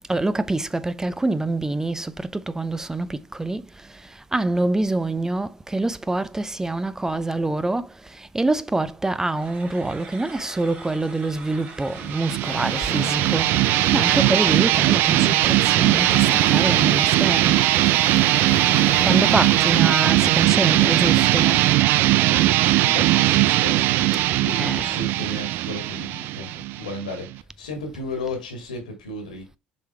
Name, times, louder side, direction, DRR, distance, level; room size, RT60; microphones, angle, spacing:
voice 1, 0.1-3.6 4.3-17.6 19.0-21.6 24.6-25.0, right 2 dB, 15° right, 0.6 m, -25 dB
sound 1, 9.3-17.7, right 4 dB, 40° right, 2.3 m, -42 dB
sound 2, 12.0-27.4, right 16 dB, 60° right, 0.3 m, -19 dB
sound 3, 12.4-21.9, left 9 dB, 50° left, 0.6 m, -36 dB
voice 2, 22.1-29.6, left 2 dB, 80° left, 2.3 m, -35 dB
6.9 x 4.7 x 3.3 m
figure-of-eight pair, 60°, 4 cm